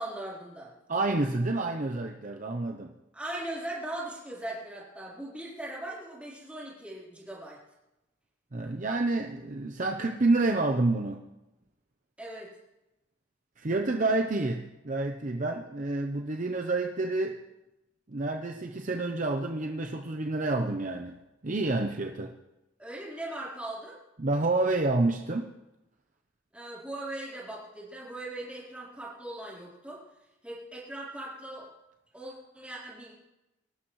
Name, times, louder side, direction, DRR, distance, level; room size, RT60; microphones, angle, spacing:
voice 1, 0.0-0.7 3.1-7.6 12.2-12.5 22.8-24.0 26.5-30.0 30.4-31.7 32.1-33.1, right 1 dB, 5° right, -6 dB, 3.8 m, -39 dB
voice 2, 0.9-2.9 8.5-11.3 13.6-17.4 18.1-22.3 24.2-25.5, right 2 dB, 40° right, 4 dB, 0.7 m, -29 dB
24.5 x 12.5 x 3.2 m, 0.97 s
head